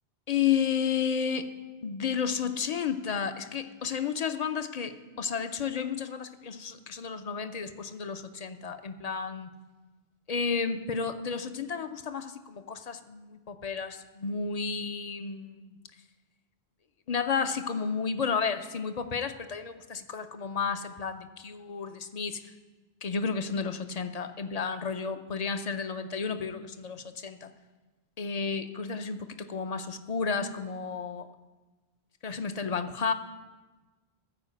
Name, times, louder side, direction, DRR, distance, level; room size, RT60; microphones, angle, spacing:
voice 1, 0.3-1.5 1.8-9.5 10.3-15.8 17.1-22.4 23.0-27.5 28.2-31.3 32.2-33.1, left 6 dB, 45° left, 9 dB, 0.6 m, -32 dB
14.0 x 4.8 x 7.7 m, 1.2 s
omnidirectional pair, 1.0 m